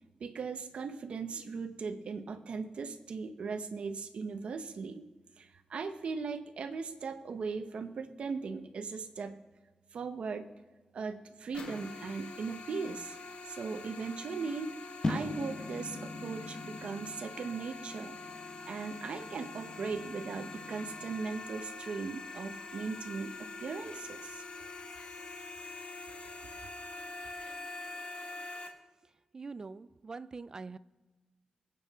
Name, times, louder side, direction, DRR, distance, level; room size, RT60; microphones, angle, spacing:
voice 1, 0.2-5.1 5.4-9.4 9.9-10.5 10.9-13.2 13.4-14.8 15.0-18.2 18.6-24.4, right 5 dB, 60° right, 0.9 m, -38 dB
sound 1, 11.5-28.7, left 3 dB, 55° left, 1.5 m, -45 dB
sound 2, 15.0-21.3, left 2 dB, 30° left, 0.9 m, -41 dB
voice 2, 29.3-30.8, right 4 dB, 30° right, 0.4 m, -44 dB
25.0 x 8.6 x 3.6 m
wide cardioid pair, 170°, 2 cm